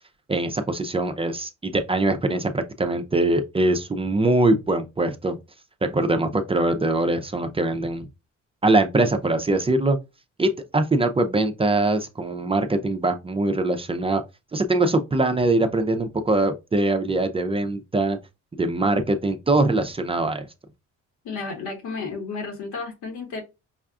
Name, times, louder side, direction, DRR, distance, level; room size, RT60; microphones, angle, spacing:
voice 1, 0.3-5.4 5.8-8.1 8.6-10.0 10.4-14.2 14.5-18.2 18.5-20.5, right 2 dB, 20° right, 0.5 m, -22 dB
voice 2, 21.2-23.4, left 4 dB, 75° left, 1.6 m, -32 dB
5.5 x 2.3 x 2.4 m
cardioid pair, 90°, 30 cm